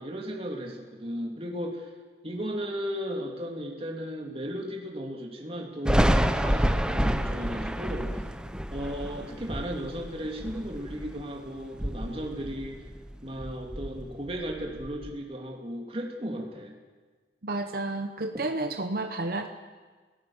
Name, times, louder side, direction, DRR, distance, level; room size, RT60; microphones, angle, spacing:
voice 1, 0.0-1.9 2.2-8.2 8.7-12.9 13.2-16.7 18.3-18.4, equal, 35° right, 0 dB, 2.5 m, -35 dB
Thunder, 5.9-11.3 11.7-13.1 13.4-15.1, equal, 5° right, 0.8 m, -28 dB
voice 2, 17.4-19.5, right 2 dB, 55° right, 6 dB, 1.0 m, -31 dB
29.0 x 17.5 x 7.2 m, 1.4 s
head